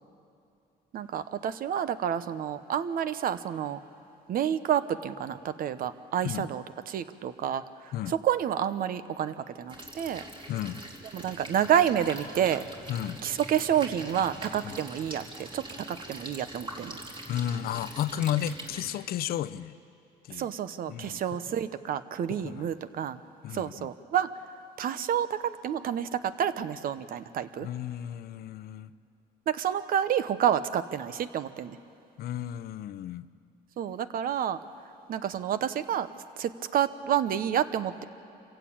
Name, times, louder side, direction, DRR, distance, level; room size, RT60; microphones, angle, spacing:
voice 1, 0.9-3.8 4.3-7.6 8.1-10.2 11.1-12.6 13.2-17.0 20.3-23.2 23.5-24.3 24.8-27.7 29.5-31.8 33.8-34.6 35.1-36.1 36.4-38.0, right 9 dB, 60° right, 13 dB, 1.0 m, -29 dB
sound 1, 9.7-18.9, right 1 dB, 30° right, 3.1 m, -43 dB
voice 2, 10.5-10.8 12.9-13.2 14.6-14.8 17.3-19.8 20.3-20.5 20.9-21.4 22.3-22.7 23.4-23.9 27.6-28.9 32.2-33.3, left 11 dB, 65° left, 15 dB, 0.6 m, -33 dB
26.0 x 16.0 x 8.7 m, 2.7 s
cardioid pair, 110°, 17 cm